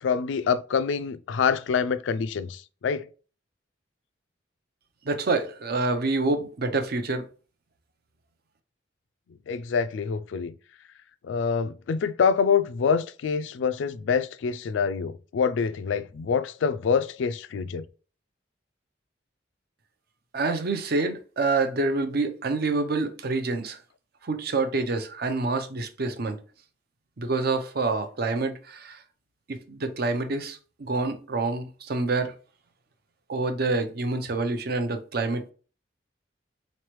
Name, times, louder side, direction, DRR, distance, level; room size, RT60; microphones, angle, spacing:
voice 1, 0.0-3.1 9.5-10.5 11.2-17.9, left 6 dB, 75° left, 0.3 m, -26 dB
voice 2, 5.0-7.2 20.3-23.8 24.2-26.4 27.2-29.0 29.5-32.3 33.3-35.5, right 3 dB, 55° right, 0.6 m, -27 dB
4.1 x 3.2 x 3.0 m
head